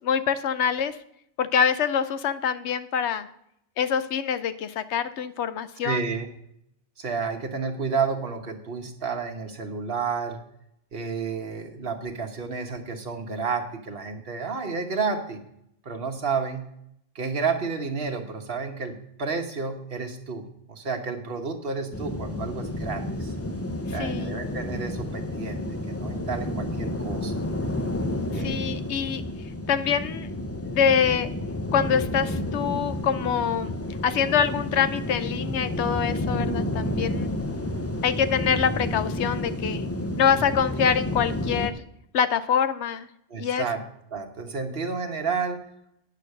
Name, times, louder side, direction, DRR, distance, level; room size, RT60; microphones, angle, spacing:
voice 1, 0.0-1.0 1.4-3.3 3.8-6.0 24.0-24.4 28.3-29.2 29.7-30.3 30.6-31.3 31.7-33.7 34.0-37.3 38.0-39.9 40.2-41.7 42.1-43.1 43.4-43.7, left 7 dB, 75° left, 12 dB, 0.9 m, -25 dB
voice 2, 5.8-6.3 7.0-10.4 10.9-15.4 15.8-16.7 17.1-23.3 23.9-27.3 28.3-28.7 43.3-43.8 44.1-45.6, right 5 dB, 55° right, 4 dB, 1.3 m, -31 dB
sound 1, 21.9-41.7, left 1 dB, 20° left, 0.4 m, -30 dB
9.6 x 6.5 x 6.5 m, 0.76 s
omnidirectional pair, 1.2 m